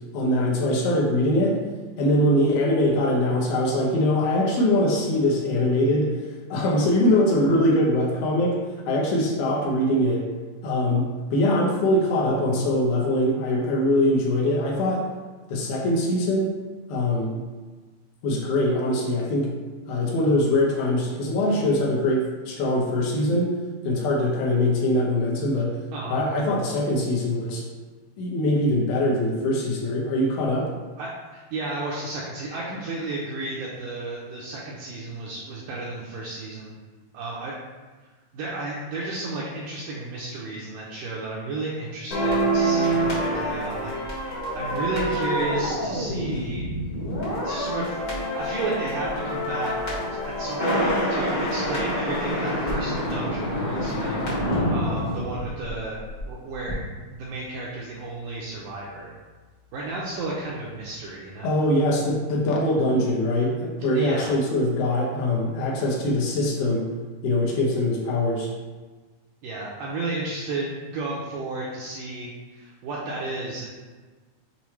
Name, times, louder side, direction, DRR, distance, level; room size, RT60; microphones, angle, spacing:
voice 1, 0.1-1.6 2.0-6.1 6.5-8.6 8.9-10.3 10.6-15.0 15.5-16.5 16.9-17.4 18.2-19.5 19.9-23.5 23.8-25.8 26.1-27.6 28.2-30.7 61.4-66.9 67.2-68.5, left 1 dB, 75° left, -2 dB, 2.5 m, -22 dB
voice 2, 31.0-36.7 37.1-37.5 38.3-43.9 44.5-46.7 47.4-49.7 50.2-54.2 54.7-56.0 56.3-56.8 57.1-59.1 59.7-61.5 63.9-64.3 69.4-73.7, right 2 dB, 75° right, -5 dB, 2.0 m, -33 dB
sound 1, 42.1-56.3 56.5-56.7, equal, 50° left, 1.1 m, -26 dB
7.1 x 4.5 x 3.1 m, 1.3 s
omnidirectional pair, 4.6 m